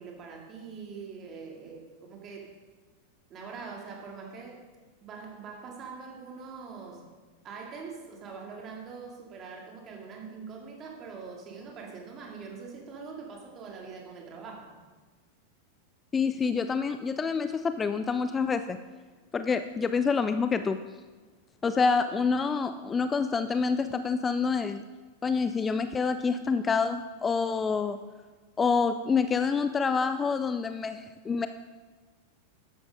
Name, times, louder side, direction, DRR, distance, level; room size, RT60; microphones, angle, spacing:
voice 1, 0.0-2.6 3.3-4.6 5.0-7.0 7.4-14.7, right 5 dB, 30° right, 0 dB, 2.6 m, -43 dB
voice 2, 16.1-18.8 19.3-20.8 21.6-24.8 25.2-28.0 28.6-31.5, left 5 dB, 20° left, 11 dB, 0.4 m, -27 dB
13.0 x 10.5 x 3.8 m, 1.3 s
figure-of-eight pair, 90°, 0 cm